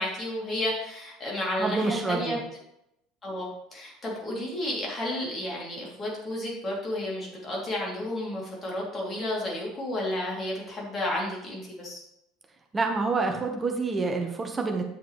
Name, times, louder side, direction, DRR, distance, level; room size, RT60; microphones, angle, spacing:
voice 1, 0.0-2.4 3.2-12.0, left 1 dB, 30° left, -3 dB, 3.2 m, -32 dB
voice 2, 1.6-2.4 12.7-14.8, right 3 dB, 20° right, 3 dB, 1.4 m, -27 dB
9.8 x 6.6 x 3.3 m, 0.82 s
figure-of-eight pair, 65°, 0 cm